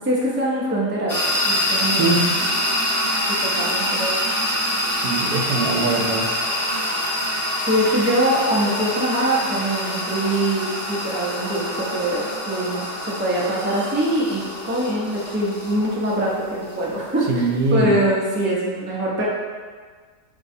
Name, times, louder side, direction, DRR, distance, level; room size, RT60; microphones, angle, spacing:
voice 1, 0.0-1.2 1.5-2.3 3.3-4.2 7.7-19.2, right 1 dB, 15° right, -6 dB, 0.4 m, -23 dB
sound 1, 1.1-17.7, equal, 40° left, 1.0 m, -26 dB
voice 2, 5.0-6.2 17.3-17.9, right 3 dB, 85° right, 0 dB, 1.2 m, -21 dB
5.4 x 3.0 x 2.6 m, 1.5 s
omnidirectional pair, 1.7 m